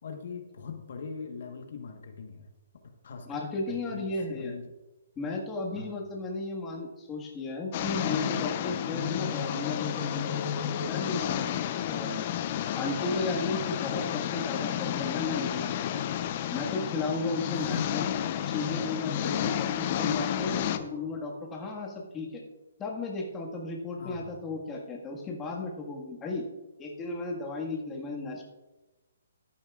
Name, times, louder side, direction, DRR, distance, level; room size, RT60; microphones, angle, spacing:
voice 1, 0.0-2.5 2.8-3.4 3.7-4.7 5.7-5.9 17.5-18.1 19.2-19.6 20.5-20.9 24.0-24.3, left 6 dB, 60° left, 4 dB, 1.3 m, -40 dB
voice 2, 3.3-4.5 5.1-12.3 12.7-16.0 16.5-18.1 18.5-22.4 22.8-26.4 26.8-28.4, left 3 dB, 15° left, -1 dB, 1.7 m, -34 dB
sound 1, 7.7-20.8, left 10 dB, 40° left, 0.7 m, -31 dB
14.0 x 10.5 x 2.4 m, 1.1 s
hypercardioid pair, 150°, 0 cm